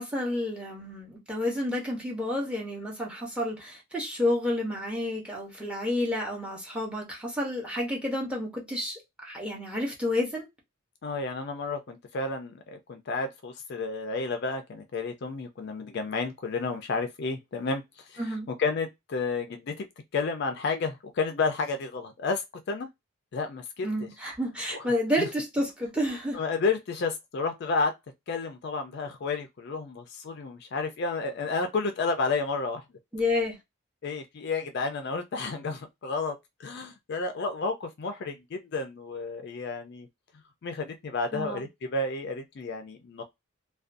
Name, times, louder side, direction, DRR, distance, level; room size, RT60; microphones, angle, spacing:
voice 1, 0.0-10.5 18.2-18.5 23.8-26.4 33.1-33.6 41.3-41.6, left 1 dB, 5° right, 0.7 m, -30 dB
voice 2, 11.0-17.8 18.1-18.2 18.5-19.9 20.1-22.9 23.3-23.9 24.7-24.9 25.2-25.3 26.3-27.9 28.3-32.8 34.0-40.1 40.6-43.2, left 4 dB, 50° left, 0.4 m, -31 dB
2.4 x 2.2 x 2.5 m
head